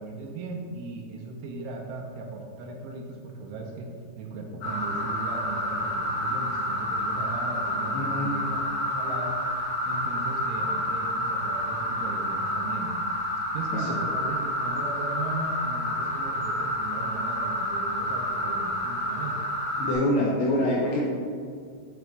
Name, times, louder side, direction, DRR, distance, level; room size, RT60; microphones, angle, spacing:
voice 1, 0.0-3.9 4.2-8.6 8.9-9.4 9.9-12.9 13.5-19.4, right 3 dB, 80° right, 0 dB, 3.1 m, -37 dB
sound 1, 4.6-19.9, left 1 dB, 65° left, 2.6 m, -29 dB
voice 2, 7.9-8.3 13.7-14.0 19.8-21.0, left 1 dB, 85° left, -4 dB, 2.5 m, -25 dB
8.5 x 3.0 x 4.5 m, 2.1 s
omnidirectional pair, 5.7 m